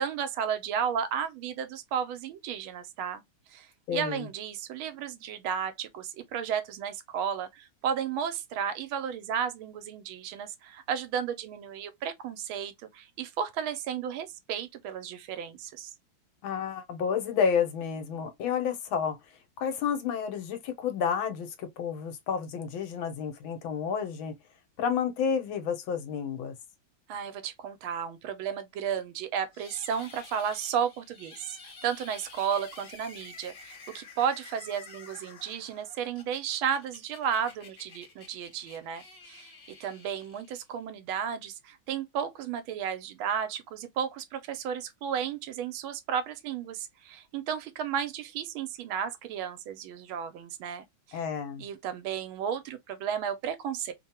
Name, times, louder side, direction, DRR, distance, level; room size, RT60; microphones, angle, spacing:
voice 1, 0.0-3.2 3.5-15.9 27.1-39.5 39.8-51.2 51.6-53.9, right 8 dB, 85° right, 1.5 m, -33 dB
voice 2, 3.9-4.3 16.4-19.2 19.6-24.3 24.8-26.5 51.1-51.6, left 7 dB, 80° left, 1.6 m, -30 dB
sound 1, 29.5-40.8, left 4 dB, 45° left, 1.3 m, -50 dB
3.5 x 2.2 x 4.2 m
omnidirectional pair, 2.2 m